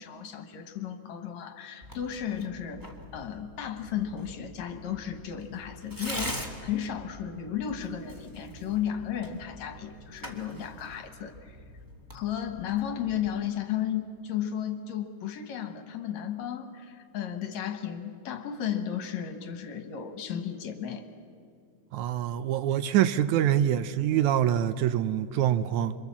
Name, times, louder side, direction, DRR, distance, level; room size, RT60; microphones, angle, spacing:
voice 1, 0.0-11.6 12.1-21.0, left 9 dB, 65° left, 6 dB, 2.6 m, -34 dB
Tearing, 1.8-13.4, equal, 10° right, 1.6 m, -43 dB
voice 2, 21.9-26.0, right 11 dB, 75° right, 12 dB, 2.1 m, -25 dB
27.5 x 24.5 x 7.3 m, 2.3 s
omnidirectional pair, 3.5 m